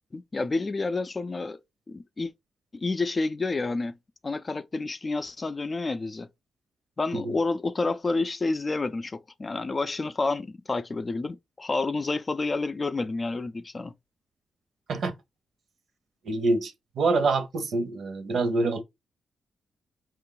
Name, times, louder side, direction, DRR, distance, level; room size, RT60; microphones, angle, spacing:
voice 1, 0.1-1.6 1.9-2.3 2.7-4.0 4.2-6.3 7.0-13.9, left 3 dB, 30° left, 0.4 m, -29 dB
voice 2, 16.2-18.8, right 3 dB, 70° right, 0.9 m, -26 dB
4.4 x 2.5 x 3.8 m
cardioid pair, 90°, 0 cm